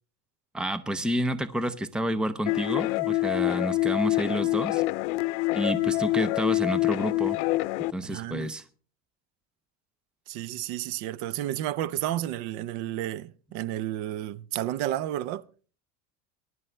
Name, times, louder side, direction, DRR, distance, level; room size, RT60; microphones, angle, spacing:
voice 1, 0.5-4.8 5.5-7.4 7.8-8.6, equal, 5° right, 0.5 m, -29 dB
sound 1, 2.5-7.9, left 20 dB, 90° left, 0.6 m, -26 dB
voice 2, 8.0-8.5 10.3-15.4, right 13 dB, 70° right, 0.7 m, -31 dB
21.0 x 11.0 x 3.2 m
cardioid pair, 155°, 33 cm